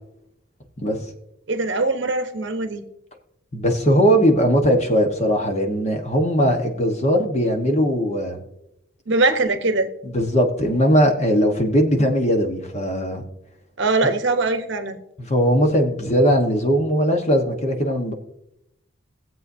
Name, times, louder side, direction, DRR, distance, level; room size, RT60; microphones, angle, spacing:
voice 1, 0.8-1.1 3.5-8.4 10.0-13.2 15.2-18.1, equal, 35° left, 4 dB, 1.3 m, -19 dB
voice 2, 1.5-2.8 9.1-9.9 13.8-15.0, right 3 dB, 60° right, 7 dB, 1.1 m, -21 dB
20.0 x 7.7 x 2.7 m, 0.83 s
head